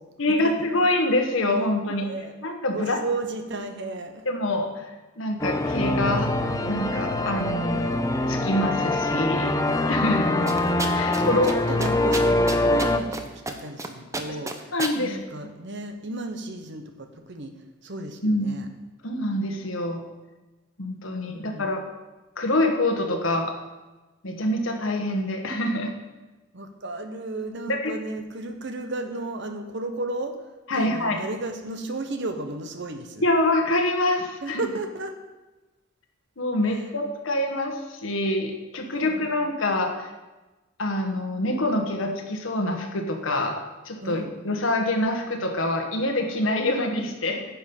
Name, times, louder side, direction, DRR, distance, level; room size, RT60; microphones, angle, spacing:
voice 1, 0.2-2.1 2.4-3.0 4.2-4.9 5.2-6.3 6.7-7.9 8.3-9.5 9.9-10.3 10.9-11.5 14.7-15.2 18.2-18.6 19.0-20.0 20.8-21.8 22.4-23.5 24.2-25.9 27.7-27.9 30.7-31.2 33.2-34.6 36.4-40.1 40.8-47.5, left 1 dB, 85° left, 3 dB, 1.4 m, -25 dB
voice 2, 1.9-2.4 2.7-4.2 10.0-10.4 11.2-17.5 17.8-18.7 21.3-21.7 26.5-30.4 30.7-33.3 34.4-35.1 36.7-36.8 39.0-39.3 44.0-44.3, right 2 dB, 65° right, 6 dB, 1.1 m, -34 dB
sound 1, 5.4-13.0, left 2 dB, 15° left, 0.6 m, -24 dB
sound 2, 10.5-11.2 11.5-11.6 11.8-13.2 13.5-13.9 14.1-15.0, right 2 dB, 15° right, 0.7 m, -30 dB
10.5 x 7.1 x 5.4 m, 1.2 s
head